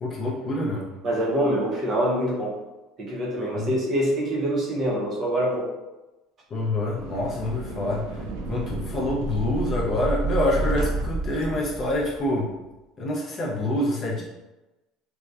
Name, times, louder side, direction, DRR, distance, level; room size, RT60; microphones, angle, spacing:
voice 1, 0.0-0.9 3.5-3.7 6.5-8.2 8.5-12.5 13.0-14.2, left 1 dB, 25° left, -3 dB, 0.4 m, -26 dB
voice 2, 1.0-2.6 3.0-5.7, right 1 dB, 30° right, -4 dB, 0.6 m, -25 dB
sound 1, 6.7-12.3, right 2 dB, 85° right, 0.3 m, -30 dB
2.6 x 2.0 x 2.3 m, 1.0 s
cardioid pair, 170°, 0 cm